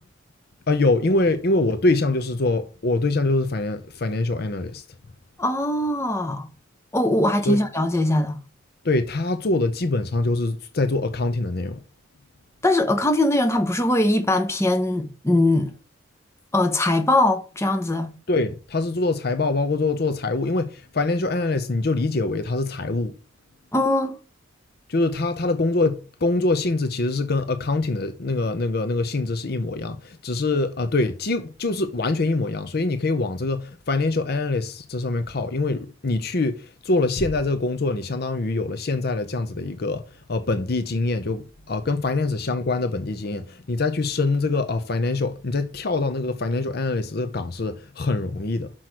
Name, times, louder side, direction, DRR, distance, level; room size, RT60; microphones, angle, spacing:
voice 1, 0.7-4.8 7.4-7.6 8.8-11.8 18.3-23.1 24.9-40.0 40.3-48.7, left 2 dB, 50° left, 0.7 m, -24 dB
voice 2, 5.4-6.5 6.9-8.4 12.6-15.7 16.5-18.1 23.7-24.2, left 1 dB, 15° left, 1.0 m, -21 dB
6.1 x 6.0 x 4.7 m
head